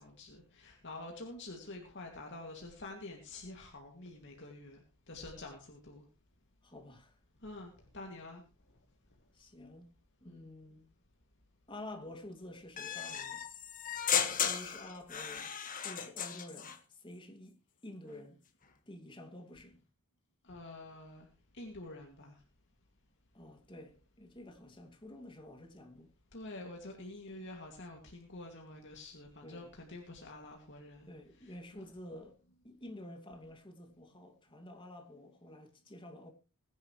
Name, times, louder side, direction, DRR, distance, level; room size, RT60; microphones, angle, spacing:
voice 1, 0.0-4.8 5.1-6.0 7.4-8.4 10.2-10.5 20.4-21.3 21.5-22.4 26.3-31.1 31.4-31.5, left 2 dB, 55° left, 2.5 m, -47 dB
voice 2, 6.6-7.2 9.3-9.9 10.2-10.9 11.7-13.4 14.4-15.6 15.8-17.5 17.8-18.4 18.9-19.8 23.3-26.1 29.4-29.7 31.1-32.4 32.6-36.3, left 1 dB, 20° left, 2.4 m, -50 dB
sound 1, 12.8-16.8, left 8 dB, 40° left, 1.7 m, -35 dB
22.0 x 10.5 x 3.3 m
head